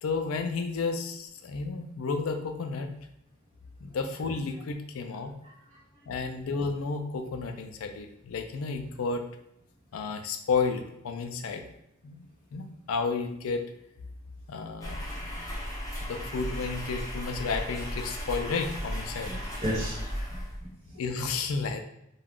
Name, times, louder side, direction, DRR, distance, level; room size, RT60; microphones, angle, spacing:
voice 1, 0.0-2.9 3.8-5.3 6.1-9.2 9.9-11.6 12.0-13.6 14.5-15.4 16.0-19.3 21.0-21.8, left 4 dB, 80° left, 6 dB, 0.4 m, -32 dB
voice 2, 5.4-5.8 19.3-21.0, equal, 30° right, -9 dB, 0.7 m, -36 dB
sound 1, 14.8-20.8, equal, 15° left, 0.7 m, -36 dB
2.3 x 2.3 x 3.5 m, 0.78 s
head